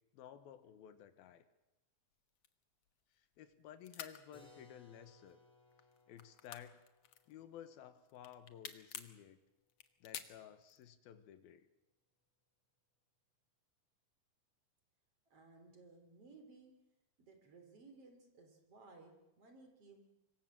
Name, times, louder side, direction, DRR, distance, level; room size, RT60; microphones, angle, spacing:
voice 1, 0.1-1.4 3.2-5.4 6.1-6.8 7.3-9.4 10.0-11.7, left 10 dB, 80° left, 11 dB, 3.2 m, -55 dB
sound 1, 2.4-3.5 3.8-4.2 4.9-5.4 5.7-7.7 8.1-9.2 9.7-10.9, left 9 dB, 60° left, 1.7 m, -49 dB
Keyboard (musical), 4.3-9.9, left 2 dB, ahead, 6.5 m, -67 dB
voice 2, 15.3-16.7 17.2-20.1, right 3 dB, 40° right, 5 dB, 4.4 m, -60 dB
25.5 x 22.0 x 7.6 m, 0.96 s
omnidirectional pair, 4.3 m